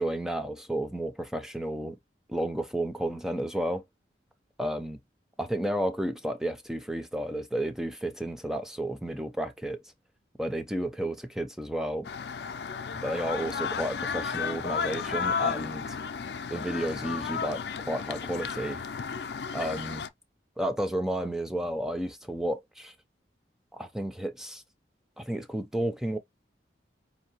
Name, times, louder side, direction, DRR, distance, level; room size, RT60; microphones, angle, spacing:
voice 1, 0.0-2.0 2.3-3.8 4.6-5.0 5.4-9.8 10.4-12.1 13.0-16.0 16.5-18.8 19.5-20.1 20.6-22.9 23.7-24.6 25.2-26.2, right 1 dB, 5° right, 0.4 m, -32 dB
sound 1, 12.0-20.1, left 6 dB, 70° left, 0.4 m, -33 dB
5.2 x 2.7 x 2.9 m
head